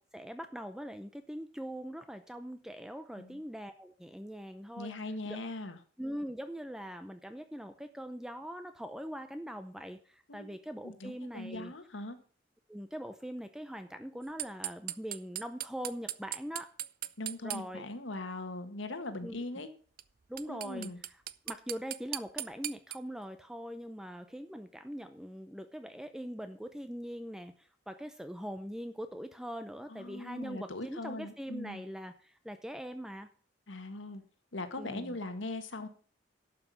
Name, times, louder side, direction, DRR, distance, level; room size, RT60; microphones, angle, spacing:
voice 1, 0.1-4.9 5.3-5.4 6.0-11.7 12.7-16.7 17.4-17.8 19.2-19.4 20.3-20.9 21.5-33.3 34.8-35.2, equal, 5° right, 8 dB, 0.6 m, -42 dB
voice 2, 4.7-5.8 10.3-10.5 10.8-12.2 17.2-19.7 20.5-21.0 29.9-31.8 33.7-34.2 34.5-35.9, left 2 dB, 85° left, 8 dB, 1.6 m, -40 dB
sound 1, 14.4-17.6 20.0-20.1 20.4-23.0, right 13 dB, 50° right, 0.5 m, -37 dB
12.0 x 5.9 x 7.0 m, 0.41 s
head